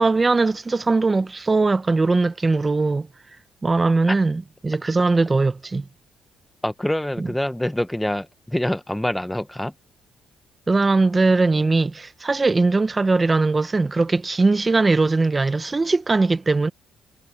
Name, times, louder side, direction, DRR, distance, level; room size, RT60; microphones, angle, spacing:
voice 1, 0.0-3.1 3.6-5.9 7.2-7.3 10.7-16.7, right 3 dB, 25° right, 1.0 m, -20 dB
voice 2, 6.6-9.7, left 1 dB, 5° left, 1.2 m, -25 dB
cardioid pair, 90°, 0 cm